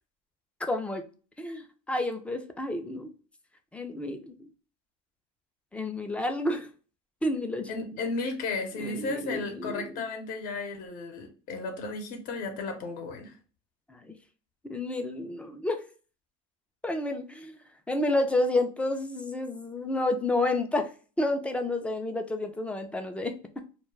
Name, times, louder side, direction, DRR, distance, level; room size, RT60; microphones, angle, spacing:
voice 1, 0.6-1.0 1.4-3.1 3.7-4.5 5.7-6.7 7.2-7.7 8.7-10.0 13.9-14.2 14.6-15.8 16.8-17.6 17.9-20.9 21.2-23.4, left 2 dB, 5° left, 5 dB, 0.4 m, -30 dB
voice 2, 7.7-13.3, left 3 dB, 50° left, 4 dB, 0.8 m, -34 dB
2.3 x 2.2 x 3.1 m, 0.37 s
supercardioid pair, 120°, 18 cm